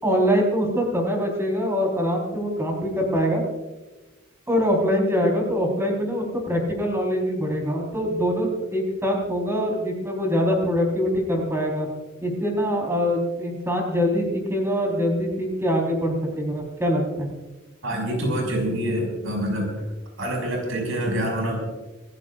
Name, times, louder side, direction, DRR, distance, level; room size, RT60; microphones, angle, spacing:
voice 1, 0.0-3.4 4.5-11.9 12.2-17.3, equal, 15° right, 0 dB, 4.3 m, -24 dB
voice 2, 17.8-19.7 20.2-21.6, right 1 dB, 80° right, 1 dB, 6.0 m, -26 dB
26.5 x 16.0 x 2.5 m, 1.2 s
head